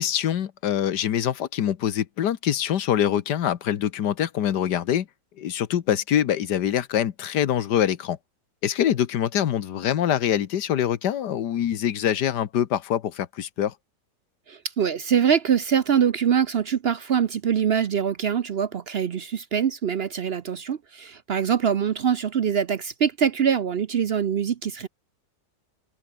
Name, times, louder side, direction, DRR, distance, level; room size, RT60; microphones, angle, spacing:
voice 1, 0.0-5.1 5.4-8.2 8.6-13.7, left 10 dB, 85° left, 1.7 m, -24 dB
voice 2, 14.5-24.9, right 8 dB, 55° right, 0.7 m, -24 dB
open air
omnidirectional pair, 1.8 m